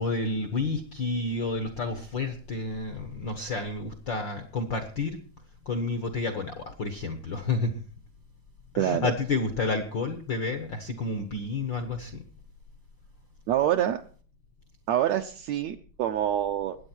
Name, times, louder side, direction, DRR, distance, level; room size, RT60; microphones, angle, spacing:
voice 1, 0.0-5.2 5.6-7.7 8.7-12.2, left 3 dB, 60° left, 8 dB, 1.2 m, -30 dB
voice 2, 8.8-9.1 13.5-14.0 14.9-16.8, right 11 dB, 75° right, 7 dB, 1.7 m, -26 dB
21.0 x 8.9 x 4.4 m, 0.41 s
omnidirectional pair, 3.8 m